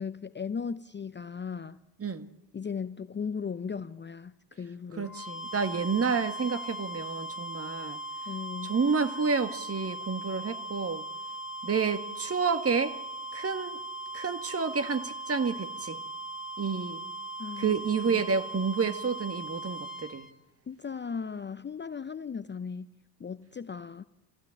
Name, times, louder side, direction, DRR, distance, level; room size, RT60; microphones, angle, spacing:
voice 1, 0.0-1.8 2.5-5.1 8.3-8.8 17.4-17.8 20.7-22.9 23.2-24.1, left 6 dB, 25° left, 0.7 m, -37 dB
sound 1, 5.0-20.3, right 2 dB, ahead, 2.8 m, -39 dB
voice 2, 5.0-8.0 8.6-11.0 11.6-13.0 13.3-13.8 14.1-16.0 16.6-17.0 17.6-20.3, right 5 dB, 30° right, 1.8 m, -29 dB
25.0 x 15.5 x 9.0 m
hypercardioid pair, 55°, 48 cm